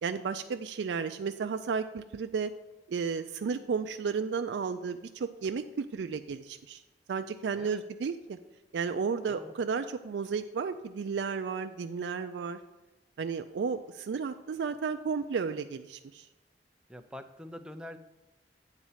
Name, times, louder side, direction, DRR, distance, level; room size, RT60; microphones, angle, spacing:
voice 1, 0.0-2.5 2.9-6.8 7.1-8.4 8.7-12.6 13.2-16.3, right 5 dB, 85° right, 8 dB, 0.4 m, -33 dB
voice 2, 16.9-18.0, left 1 dB, 5° right, 7 dB, 0.4 m, -45 dB
8.8 x 4.1 x 7.2 m, 1.1 s
head